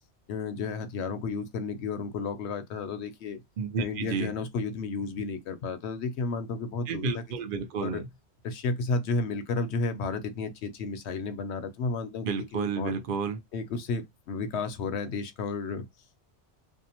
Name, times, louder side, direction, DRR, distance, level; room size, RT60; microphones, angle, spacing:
voice 1, 0.3-3.4 3.8-7.2 7.8-8.0 8.4-12.9 13.5-15.8, left 4 dB, 75° left, 0.9 m, -32 dB
voice 2, 3.6-4.3 6.9-8.1 12.2-13.4, right 5 dB, 55° right, 0.7 m, -31 dB
2.6 x 2.0 x 2.8 m
omnidirectional pair, 1.2 m